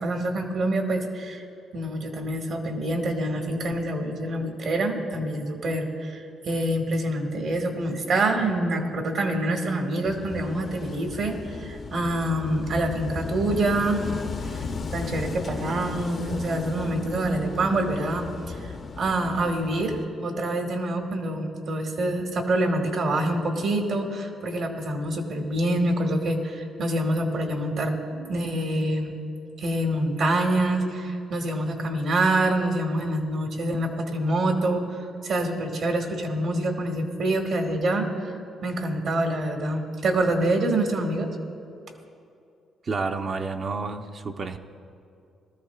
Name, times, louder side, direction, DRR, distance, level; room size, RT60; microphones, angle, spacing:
voice 1, 0.0-1.4 1.7-14.0 14.5-14.7 14.9-29.1 29.6-34.8 35.2-38.3 38.6-41.3, right 1 dB, 65° right, 3 dB, 1.7 m, -26 dB
Wind / Waves surf, 10.0-20.0, left 4 dB, 45° left, 0.6 m, -36 dB
voice 2, 42.8-44.6, right 4 dB, 45° right, 6 dB, 0.6 m, -30 dB
19.5 x 13.5 x 2.4 m, 2.5 s
cardioid pair, 90°, 0 cm